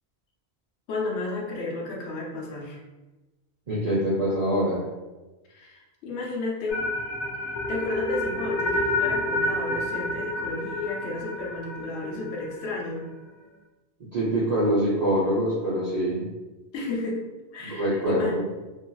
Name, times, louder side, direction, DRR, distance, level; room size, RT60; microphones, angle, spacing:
voice 1, 0.9-2.8 5.5-6.9 7.7-13.1 16.7-17.2 17.5-18.3, left 3 dB, 85° left, -2 dB, 0.9 m, -32 dB
voice 2, 3.7-4.8 14.1-16.2 17.7-18.4, equal, 45° right, -9 dB, 0.7 m, -24 dB
sound 1, 6.7-12.8, left 1 dB, 55° left, 0.5 m, -29 dB
2.8 x 2.5 x 2.2 m, 1.1 s
omnidirectional pair, 1.1 m